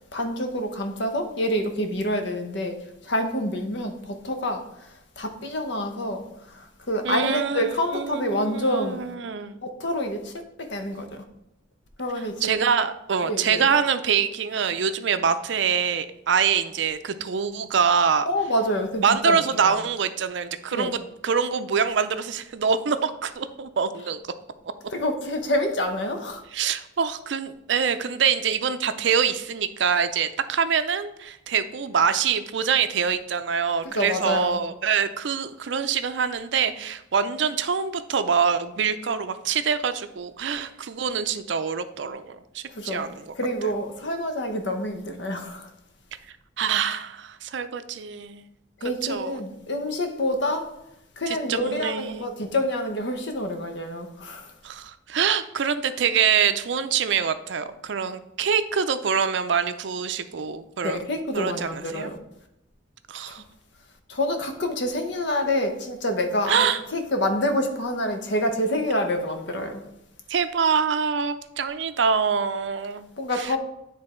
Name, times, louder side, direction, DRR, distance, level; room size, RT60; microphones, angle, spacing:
voice 1, 0.1-2.8 3.0-4.9 5.2-9.1 9.6-10.3 10.6-11.1 12.0-12.6 13.2-13.7 18.3-19.8 20.7-20.9 24.9-26.4 33.8-34.6 42.7-43.1 43.3-45.7 48.8-50.7 51.2-54.5 60.8-62.2 63.3-63.4 64.1-69.8 73.2-73.6, left 1 dB, 65° left, 1.0 m, -27 dB
voice 2, 7.0-9.6 12.4-18.3 19.0-24.2 26.5-43.3 46.6-48.4 49.0-49.4 51.3-52.3 54.6-61.0 61.3-62.1 63.1-63.4 66.5-66.8 70.3-73.1 73.3-73.6, right 6 dB, 65° right, 0.5 m, -25 dB
9.7 x 3.4 x 4.4 m
head